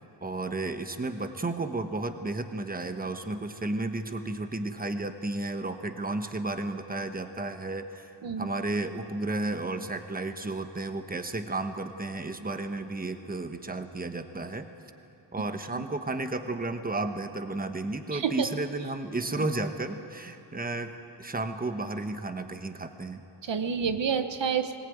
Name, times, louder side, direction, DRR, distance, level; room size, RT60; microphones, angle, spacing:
voice 1, 0.2-8.1 8.4-14.7 15.3-20.9 21.2-23.2, right 2 dB, 20° right, 8 dB, 1.1 m, -33 dB
voice 2, 18.1-18.5 23.4-24.8, right 7 dB, 80° right, 9 dB, 1.3 m, -29 dB
20.5 x 19.0 x 9.3 m, 2.9 s
wide cardioid pair, 140°, 43 cm